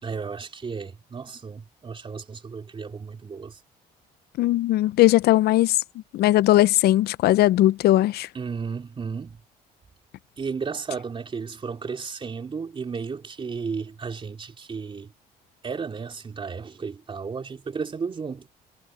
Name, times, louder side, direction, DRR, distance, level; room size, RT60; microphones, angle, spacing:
voice 1, 0.0-3.6 8.3-9.4 10.4-15.1 15.6-18.5, right 5 dB, 30° right, 3.1 m, -33 dB
voice 2, 4.4-5.8 6.1-8.3, left 15 dB, 70° left, 0.6 m, -19 dB
cardioid pair, 110°, 17 cm